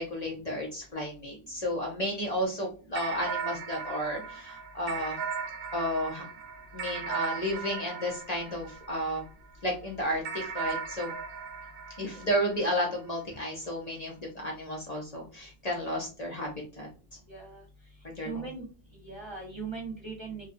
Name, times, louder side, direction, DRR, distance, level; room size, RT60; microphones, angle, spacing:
voice 1, 0.0-5.2 5.7-6.2 6.7-9.2 9.6-11.1 11.7-16.9 18.0-18.5, equal, 45° left, -1 dB, 0.7 m, -32 dB
sound 1, 3.0-9.5 10.2-13.0, right 5 dB, 70° right, 0.7 m, -38 dB
voice 2, 17.3-17.6 18.2-18.7 19.0-20.5, right 4 dB, 30° right, -1 dB, 0.8 m, -39 dB
2.6 x 2.3 x 2.5 m, 0.36 s
omnidirectional pair, 1.1 m